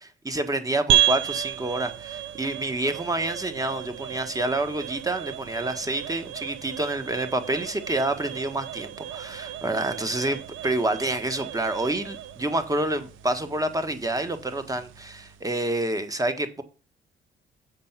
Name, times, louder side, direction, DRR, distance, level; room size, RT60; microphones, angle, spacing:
voice 1, 0.2-16.6, right 2 dB, 15° right, 1.4 m, -28 dB
sound 1, 0.9-15.5, right 11 dB, 80° right, 0.7 m, -32 dB
7.4 x 5.5 x 6.0 m
cardioid pair, 90°, 20 cm